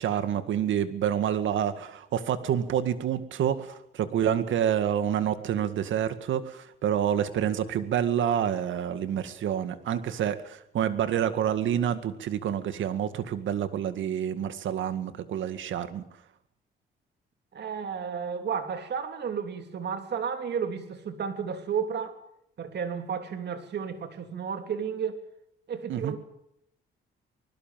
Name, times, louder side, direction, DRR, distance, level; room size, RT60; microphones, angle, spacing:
voice 1, 0.0-16.1 25.9-26.1, right 9 dB, 75° right, 2.1 m, -28 dB
voice 2, 17.5-22.2 22.6-25.2 25.7-26.2, right 7 dB, 60° right, 3.2 m, -32 dB
25.5 x 20.0 x 7.6 m
cardioid pair, 90°, 20 cm